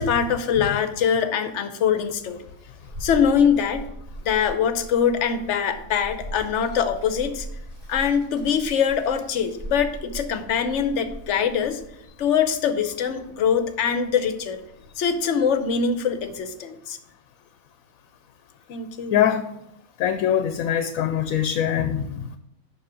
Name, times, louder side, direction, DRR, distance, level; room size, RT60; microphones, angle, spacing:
voice 1, 0.0-2.4 3.0-3.8 4.2-7.5 7.9-11.8 12.2-14.6 15.0-17.0 18.7-19.2, left 7 dB, 65° left, 9 dB, 1.0 m, -23 dB
Child speech kid speaking, 2.0-16.4, right 1 dB, 30° right, 3.5 m, -41 dB
voice 2, 19.1-19.5 20.0-22.4, left 9 dB, 85° left, 9 dB, 1.0 m, -23 dB
7.1 x 6.0 x 5.0 m, 0.84 s
omnidirectional pair, 1.4 m